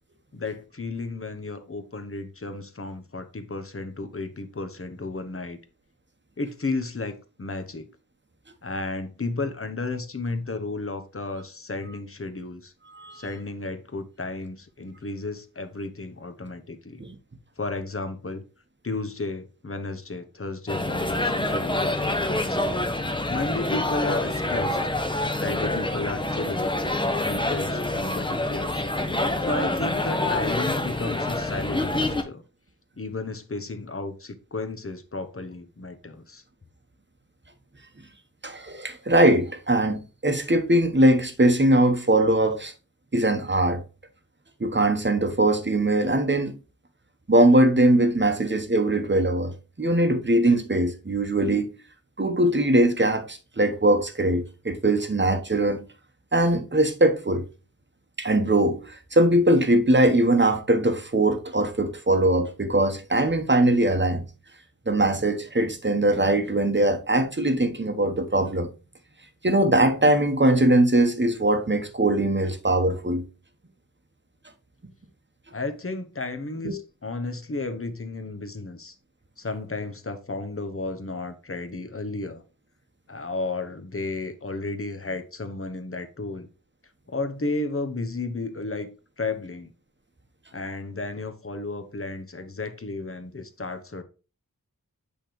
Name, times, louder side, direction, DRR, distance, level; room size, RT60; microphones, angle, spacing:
voice 1, 0.3-5.6 6.4-7.9 8.6-12.7 13.1-17.0 17.6-18.4 18.8-22.6 23.3-24.8 25.4-26.7 27.2-28.8 29.4-32.4 33.0-36.4 75.5-78.9 79.4-82.4 83.1-86.5 87.1-88.9 89.2-89.7 90.5-94.0, left 3 dB, 40° left, 1.1 m, -33 dB
sound 1, 20.7-32.2, left 2 dB, 15° left, 0.9 m, -26 dB
voice 2, 38.4-42.7 43.1-43.8 44.6-46.5 47.3-51.8 52.2-55.8 56.3-57.4 58.2-64.2 64.9-68.7 69.4-73.3 76.6-76.7, right 1 dB, 30° right, 1.2 m, -21 dB
8.3 x 3.4 x 4.5 m
wide cardioid pair, 60°, 35 cm